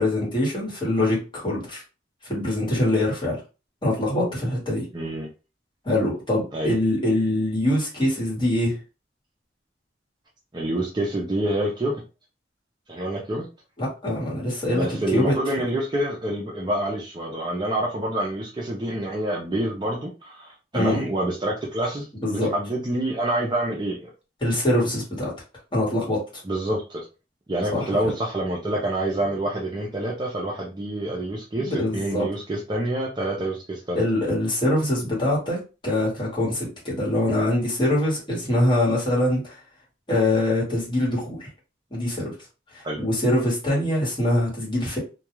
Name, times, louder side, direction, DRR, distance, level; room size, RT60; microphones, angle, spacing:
voice 1, 0.0-1.8 2.2-3.4 3.8-4.9 5.8-8.8 13.8-15.4 20.7-21.0 22.2-22.5 24.4-25.3 25.7-26.2 27.7-28.1 31.5-32.2 33.9-39.6 40.1-41.5 41.9-42.3 42.7-45.0, left 1 dB, 25° left, -5 dB, 1.2 m, -24 dB
voice 2, 4.9-5.3 6.5-6.7 10.5-12.0 12.9-13.5 14.7-24.1 26.4-27.1 27.5-34.0 42.8-43.0, right 1 dB, 25° right, -1 dB, 0.5 m, -27 dB
2.3 x 2.3 x 3.0 m, 0.31 s
head